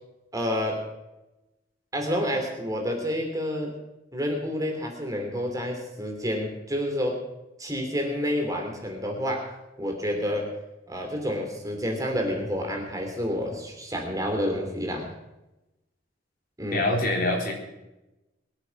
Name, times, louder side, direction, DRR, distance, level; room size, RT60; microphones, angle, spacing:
voice 1, 0.3-0.9 1.9-3.7 4.1-7.2 7.6-9.5 9.8-10.5 10.9-15.1 16.6-16.9, equal, 20° right, 2 dB, 2.9 m, -29 dB
voice 2, 16.7-17.5, left 2 dB, 50° left, 0 dB, 3.8 m, -24 dB
22.5 x 8.1 x 5.9 m, 0.98 s
head